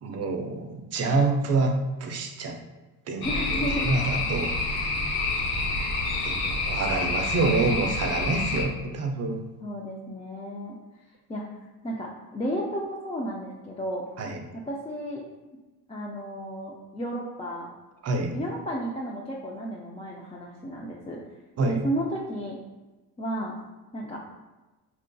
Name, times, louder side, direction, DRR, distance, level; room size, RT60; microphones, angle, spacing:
voice 1, 0.0-2.6 3.1-4.9 6.2-9.4 14.2-14.4 18.0-18.4 21.6-21.8, right 3 dB, 40° right, 4 dB, 0.6 m, -27 dB
sound 1, 3.2-8.6, left 3 dB, 70° left, 1.1 m, -28 dB
voice 2, 3.2-3.9 9.6-10.8 11.3-11.4 11.8-14.1 14.5-15.2 15.9-17.7 18.3-21.2 21.6-22.6 23.2-23.5 23.9-24.2, equal, 15° left, -3 dB, 0.4 m, -33 dB
4.3 x 2.6 x 2.2 m, 1.2 s
cardioid pair, 85°, 40 cm